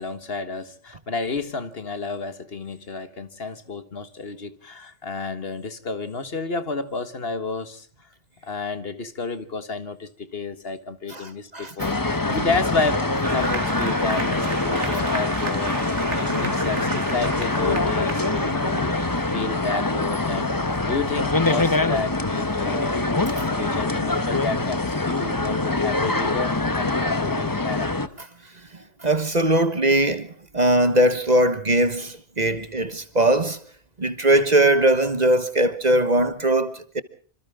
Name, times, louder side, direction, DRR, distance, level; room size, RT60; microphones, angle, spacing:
voice 1, 0.0-7.9 8.4-15.9 16.2-18.9 19.3-20.5 20.9-23.1 23.4-27.9, left 4 dB, 55° left, 1.7 m, -31 dB
voice 2, 11.1-11.9 14.8-15.0 23.4-23.5 29.0-30.3 30.5-33.6 34.0-37.0, right 1 dB, 35° right, 1.3 m, -20 dB
sound 1, 11.8-28.1, left 2 dB, 20° left, 1.0 m, -24 dB
Applause, 13.2-20.4, right 3 dB, 75° right, 2.8 m, -34 dB
27.0 x 26.0 x 3.7 m
omnidirectional pair, 1.2 m